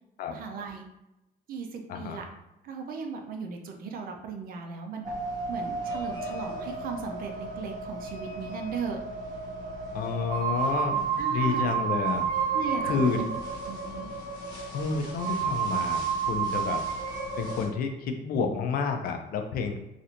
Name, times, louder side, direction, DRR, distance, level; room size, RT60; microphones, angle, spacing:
voice 1, 0.3-0.8 1.5-2.3 2.6-5.1 5.5-9.0 11.2-11.8 12.5-13.4 13.7-14.2, right 5 dB, 60° right, 3 dB, 0.5 m, -37 dB
voice 2, 1.9-2.2 9.9-10.9 11.3-12.3 12.8-13.2 14.7-16.8 17.4-19.8, left 5 dB, 60° left, 5 dB, 0.5 m, -29 dB
sound 1, 5.0-17.7, right 6 dB, 25° right, 1.1 m, -31 dB
3.2 x 2.5 x 2.8 m, 0.93 s
cardioid pair, 160°, 17 cm